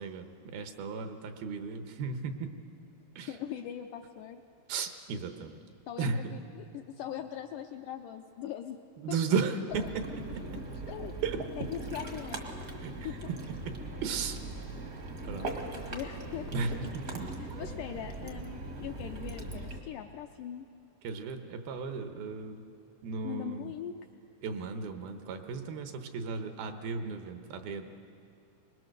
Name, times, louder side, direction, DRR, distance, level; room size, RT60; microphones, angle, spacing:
voice 1, 0.0-2.5 3.2-3.3 4.7-5.6 6.0-6.3 9.0-10.0 11.2-11.4 12.8-12.9 13.7-14.4 15.2-15.6 16.5-17.2 21.0-22.6 23.0-23.7 24.4-28.0, right 5 dB, 80° right, 7 dB, 2.9 m, -35 dB
voice 2, 3.3-4.4 5.9-8.8 9.1-9.2 9.7-9.9 10.5-11.1 11.6-12.5 13.0-13.3 15.3-16.5 17.4-20.7 23.2-24.0, left 10 dB, 80° left, 5 dB, 1.9 m, -41 dB
Ocean, 9.7-19.8, right 2 dB, 50° right, 1.0 m, -40 dB
23.5 x 21.0 x 6.7 m, 2.6 s
omnidirectional pair, 4.4 m